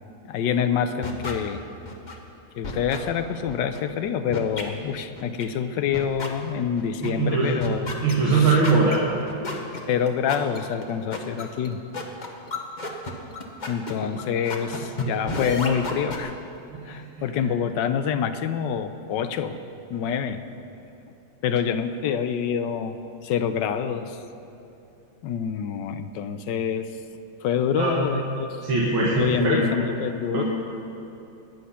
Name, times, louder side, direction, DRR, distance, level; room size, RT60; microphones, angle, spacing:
voice 1, 0.2-1.6 2.6-8.6 9.9-11.8 13.7-16.3 16.8-19.6 19.9-20.4 21.4-24.2 25.2-26.9 27.4-28.6 29.1-30.4, left 7 dB, 70° left, 9 dB, 1.2 m, -26 dB
sound 1, 1.0-1.3 1.8-2.1 2.6-3.0 3.5-3.8 4.3-4.6 5.2-5.5 5.9-6.3 6.8-7.1 7.6-16.2, left 2 dB, 30° left, 0.9 m, -32 dB
voice 2, 7.0-7.5 8.0-9.0 16.7-16.8 27.8-28.0 28.6-29.7 30.3-30.5, right 3 dB, 80° right, -6 dB, 2.7 m, -21 dB
21.0 x 8.1 x 5.7 m, 2.8 s
omnidirectional pair, 2.2 m